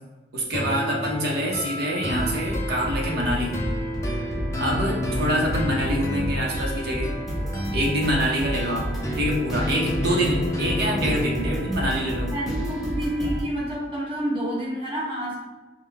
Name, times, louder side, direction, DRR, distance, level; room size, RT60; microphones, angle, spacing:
voice 1, 0.3-3.6 4.6-7.2 7.7-8.9 9.2-12.3, equal, 55° right, -2 dB, 0.9 m, -25 dB
sound 1, 0.5-11.5, left 1 dB, 15° left, 0.5 m, -31 dB
sound 2, 2.0-13.4, equal, ahead, 1.0 m, -31 dB
voice 2, 12.3-15.4, right 1 dB, 30° right, -6 dB, 1.2 m, -28 dB
4.9 x 2.2 x 3.5 m, 1.2 s
head